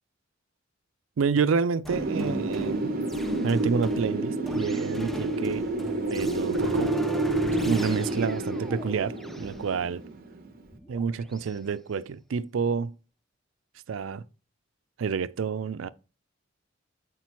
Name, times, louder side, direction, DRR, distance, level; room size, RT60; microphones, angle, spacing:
voice 1, 1.2-2.9 3.4-5.7 6.1-6.9 7.7-10.0 10.9-12.9 13.9-14.2 15.0-15.9, right 5 dB, 80° right, 0.4 m, -28 dB
sound 1, 1.8-11.6, equal, ahead, 0.4 m, -40 dB
Wind, 1.9-10.6, right 2 dB, 50° right, 0.9 m, -29 dB
8.1 x 5.8 x 3.0 m
head